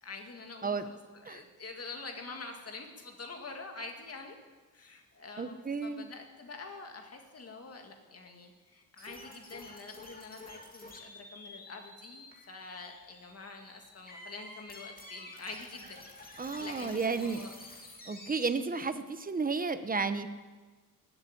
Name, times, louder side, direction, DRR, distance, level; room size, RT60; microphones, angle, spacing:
voice 1, 0.0-4.4 4.7-17.5, left 3 dB, 40° left, 3 dB, 2.1 m, -46 dB
voice 2, 5.4-6.1 16.4-17.4 18.1-20.3, right 4 dB, 25° right, 10 dB, 0.8 m, -32 dB
sound 1, 9.0-18.5, left 2 dB, 25° left, 2.3 m, -50 dB
16.5 x 8.0 x 9.9 m, 1.3 s
wide cardioid pair, 175°, 36 cm